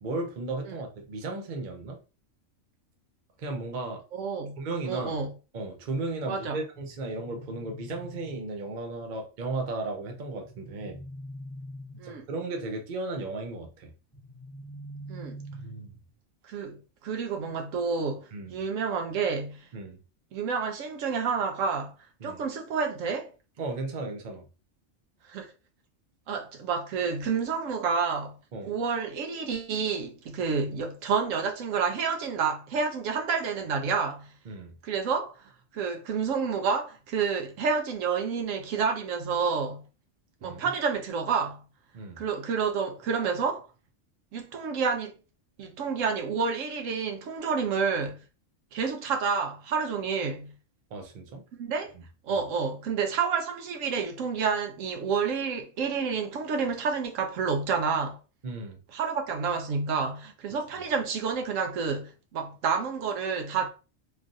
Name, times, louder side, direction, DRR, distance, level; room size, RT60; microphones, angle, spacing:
voice 1, 0.0-2.0 3.4-4.0 4.6-5.2 5.5-11.0 12.0-13.9 15.5-16.0 18.3-18.6 19.7-20.0 22.2-22.4 23.6-24.4 28.5-28.7 34.5-34.7 40.4-40.6 41.9-42.2 50.9-51.4 52.3-52.4 58.4-58.8, right 3 dB, 45° right, 0.7 m, -35 dB
voice 2, 4.1-4.6 4.8-5.3 6.3-6.6 12.0-12.3 15.1-15.4 16.4-19.7 20.3-21.9 22.2-23.3 25.3-25.5 26.3-28.4 28.6-34.3 34.8-35.3 35.7-39.8 40.4-41.6 42.2-43.7 44.3-45.1 45.6-48.2 48.7-50.5 51.5-51.9 52.2-58.2 58.9-63.7, right 5 dB, 80° right, 0.9 m, -29 dB
sound 1, 6.7-8.8 10.4-12.5 14.1-16.1, equal, 5° left, 0.9 m, -44 dB
3.2 x 2.4 x 2.5 m
omnidirectional pair, 1.4 m